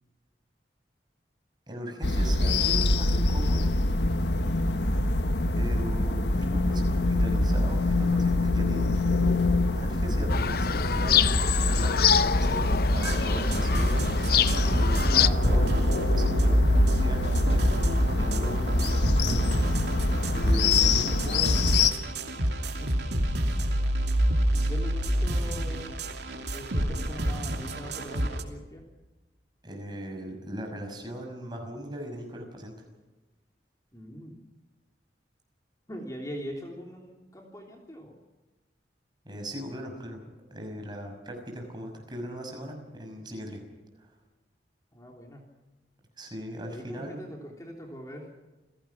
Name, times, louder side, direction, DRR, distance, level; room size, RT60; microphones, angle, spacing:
voice 1, 1.7-3.7 5.5-15.1 15.4-15.7 16.1-16.5 17.0-19.6 20.0-21.9 22.5-22.7 29.6-32.7 39.2-40.2 40.5-43.6 44.0-44.1 46.2-47.2, equal, 25° right, 3 dB, 6.0 m, -39 dB
sound 1, 2.0-21.9, left 2 dB, 75° left, 1.4 m, -25 dB
sound 2, 10.3-15.3, left 8 dB, 55° left, 0.7 m, -26 dB
sound 3, 12.9-28.4, right 1 dB, 70° right, 2.9 m, -28 dB
voice 2, 15.1-16.1 22.8-23.1 24.5-26.0 26.5-28.9 33.9-34.4 35.9-38.2 44.9-45.5 46.6-48.3, equal, 20° left, 0 dB, 3.3 m, -41 dB
29.0 x 17.0 x 6.0 m, 1.1 s
head